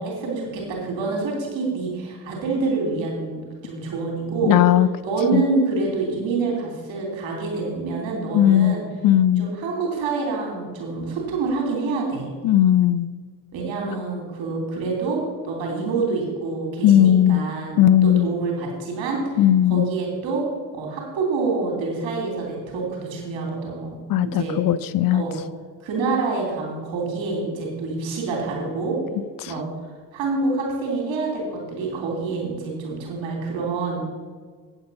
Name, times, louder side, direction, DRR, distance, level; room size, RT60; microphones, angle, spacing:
voice 1, 0.0-4.5 5.0-8.8 9.4-12.3 13.5-15.2 15.4-20.4 20.7-24.0 24.2-24.6 25.1-25.4 25.8-29.0 29.4-29.7 30.1-34.0, right 3 dB, 65° right, -1 dB, 3.0 m, -27 dB
voice 2, 4.5-4.9 5.3-5.4 8.3-8.8 9.0-9.5 12.4-13.1 16.8-17.4 17.8-18.3 19.4-19.9 24.1-25.2 29.4-29.5, left 11 dB, 45° left, 16 dB, 0.4 m, -17 dB
8.5 x 8.0 x 5.6 m, 1.5 s
hypercardioid pair, 40°, 49 cm